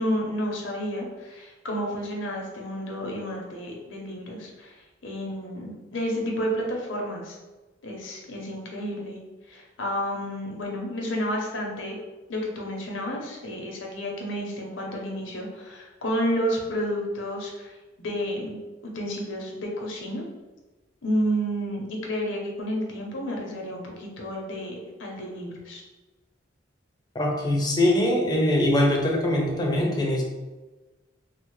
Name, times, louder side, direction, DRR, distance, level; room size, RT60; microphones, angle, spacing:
voice 1, 0.0-4.7 5.0-7.4 7.8-9.2 9.5-12.0 12.3-17.7 18.0-18.6 18.8-20.2 21.0-25.8, equal, 75° left, 0 dB, 0.7 m, -31 dB
voice 2, 27.1-30.2, left 1 dB, 20° left, 0 dB, 0.5 m, -22 dB
3.2 x 2.0 x 3.1 m, 1.1 s
head